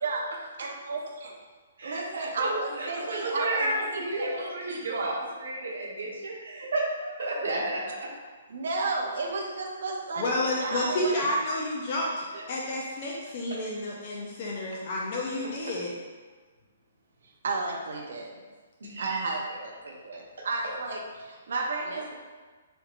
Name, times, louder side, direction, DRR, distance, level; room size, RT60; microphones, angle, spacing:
voice 1, 0.6-1.3 1.8-5.2 8.5-11.3 17.4-18.4 19.0-22.1, right 3 dB, 60° right, 0 dB, 0.5 m, -33 dB
voice 2, 1.8-5.1 5.4-7.8 12.3-12.4 18.8-19.4, right 2 dB, 80° right, -3 dB, 0.9 m, -32 dB
voice 3, 10.2-15.9, left 1 dB, 30° left, -3 dB, 0.3 m, -30 dB
3.3 x 2.4 x 2.9 m, 1.4 s
hypercardioid pair, 175°, 0 cm